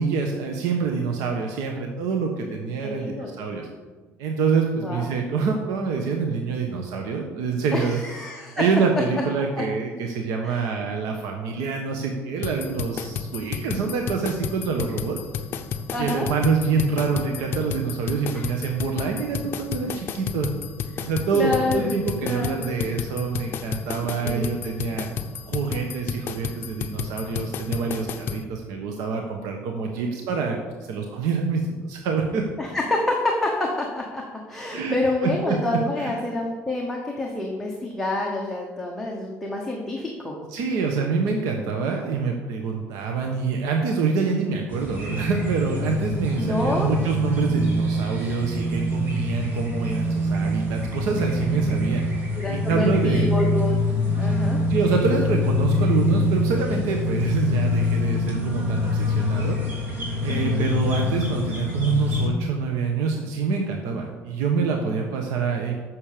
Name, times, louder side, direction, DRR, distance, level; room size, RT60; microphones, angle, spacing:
voice 1, 0.0-3.7 4.2-8.0 8.3-15.2 16.0-20.5 21.0-25.1 25.5-32.4 34.7-34.9 35.2-35.6 36.0-36.2 40.5-52.0 52.5-53.3 54.7-59.6 60.2-65.8, right 5 dB, 80° right, 2 dB, 1.2 m, -26 dB
voice 2, 2.8-3.4 4.8-5.1 7.7-8.6 10.4-10.7 15.9-16.3 18.3-18.4 21.0-21.1 21.3-21.9 22.2-22.7 24.2-24.5 29.9-30.1 32.6-40.4 46.4-46.9 52.3-53.8 54.2-54.6 60.3-60.7, left 2 dB, 5° left, -2 dB, 1.0 m, -28 dB
sound 1, 12.4-28.4, left 7 dB, 40° left, 0.7 m, -31 dB
sound 2, 44.7-62.3, left 1 dB, 35° right, 2.5 m, -25 dB
9.0 x 6.5 x 6.7 m, 1.4 s
cardioid pair, 175°, 6 cm